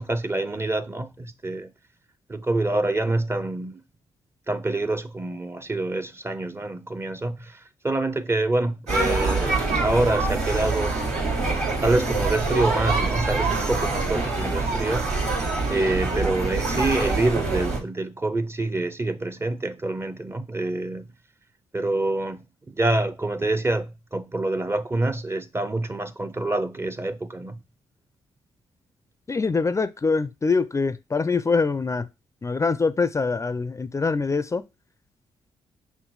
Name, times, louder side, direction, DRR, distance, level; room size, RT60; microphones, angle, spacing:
voice 1, 0.0-1.7 2.3-3.8 4.5-11.0 11.8-15.0 15.7-21.1 21.7-27.6, right 2 dB, 20° right, 0.6 m, -26 dB
sound 1, 8.9-17.8, right 3 dB, 80° right, 1.8 m, -25 dB
voice 2, 29.3-32.1 32.4-34.6, left 4 dB, 25° left, 0.4 m, -24 dB
5.9 x 2.1 x 3.9 m
supercardioid pair, 50°, 11 cm